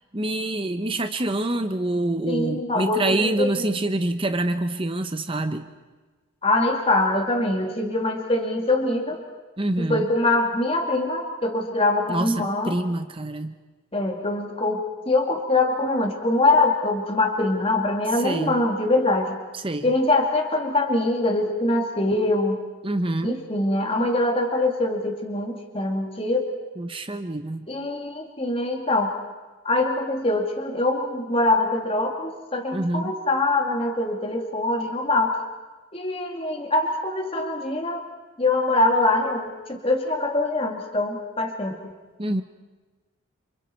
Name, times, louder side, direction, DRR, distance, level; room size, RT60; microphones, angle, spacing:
voice 1, 0.1-5.7 9.6-10.1 12.1-13.5 18.2-18.6 19.5-19.9 22.8-23.4 26.8-27.7 32.7-33.1 42.2-42.4, right 2 dB, 25° right, 8 dB, 0.9 m, -26 dB
voice 2, 2.3-3.7 6.4-9.2 9.8-12.8 13.9-19.4 19.8-22.6 23.2-26.5 27.7-29.1 29.6-35.4 35.9-38.0 38.4-41.8, left 2 dB, 25° left, 2 dB, 2.4 m, -23 dB
30.0 x 27.0 x 4.5 m, 1.3 s
head